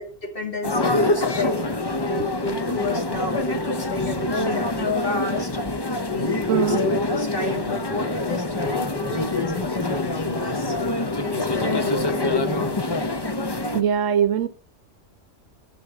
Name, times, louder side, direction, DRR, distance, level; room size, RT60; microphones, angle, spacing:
voice 1, 0.0-10.7 11.2-12.8, left 1 dB, 45° left, 2 dB, 2.3 m, -31 dB
sound 1, 0.6-13.8, left 2 dB, 25° left, 0.8 m, -25 dB
voice 2, 6.5-6.8 13.7-14.5, right 8 dB, 85° right, 14 dB, 1.2 m, -21 dB
11.5 x 4.6 x 7.8 m, 0.40 s
omnidirectional pair, 1.3 m